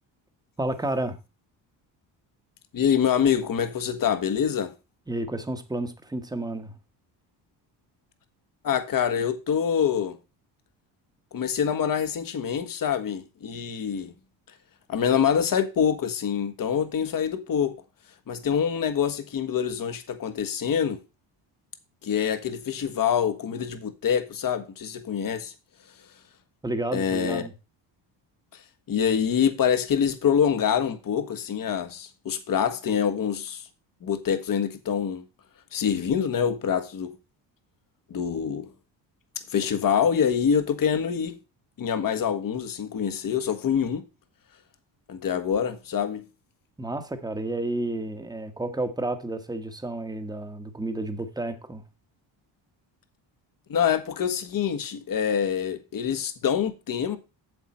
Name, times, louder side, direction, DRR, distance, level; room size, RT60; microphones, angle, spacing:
voice 1, 0.6-1.2 5.1-6.8 26.6-27.5 46.8-51.8, right 2 dB, 10° right, 1.2 m, -31 dB
voice 2, 2.7-4.7 8.6-10.2 11.3-14.1 14.9-17.7 18.3-21.0 22.0-25.5 26.9-27.4 28.5-28.6 28.9-33.7 34.0-35.2 35.7-37.2 38.1-38.7 39.5-41.4 41.8-44.1 45.1-46.3 53.7-57.2, left 8 dB, 45° left, 1.4 m, -25 dB
8.2 x 7.4 x 4.3 m
cardioid pair, 100°, 45 cm